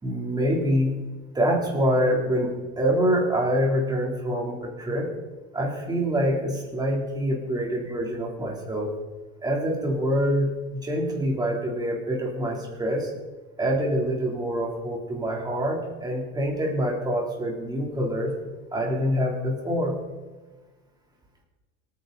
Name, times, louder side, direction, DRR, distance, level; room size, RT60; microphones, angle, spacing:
voice 1, 0.0-0.9 1.3-5.1 5.5-8.9 9.4-13.1 13.6-18.3 18.7-20.0, equal, 15° right, -1 dB, 3.2 m, -25 dB
25.5 x 9.6 x 4.0 m, 1.3 s
cardioid pair, 150°, 31 cm